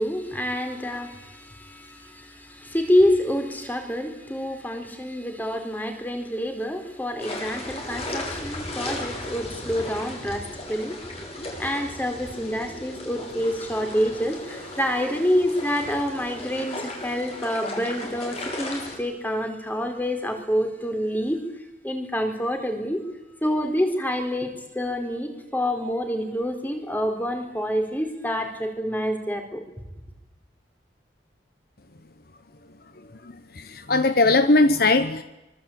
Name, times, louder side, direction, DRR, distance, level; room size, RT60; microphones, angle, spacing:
voice 1, 0.0-11.0 11.6-21.4 21.8-23.0 23.4-29.6, equal, 10° left, 5 dB, 4.4 m, -27 dB
sound 1, 7.2-19.0, left 1 dB, 30° left, 6.9 m, -36 dB
voice 2, 33.2-35.2, left 2 dB, 50° left, 11 dB, 1.2 m, -20 dB
25.0 x 24.0 x 8.9 m, 1.0 s
head